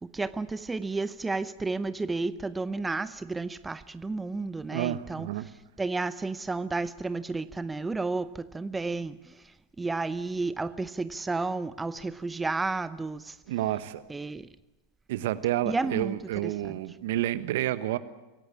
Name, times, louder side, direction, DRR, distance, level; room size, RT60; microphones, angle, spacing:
voice 1, 0.0-5.5 5.8-13.4 14.1-14.5 15.7-16.2 16.4-16.8, right 3 dB, 10° right, 0.7 m, -32 dB
voice 2, 4.7-5.4 13.5-14.0 15.1-18.0, right 14 dB, 60° right, 1.2 m, -29 dB
25.0 x 17.0 x 8.7 m
figure-of-eight pair, 90°, 0 cm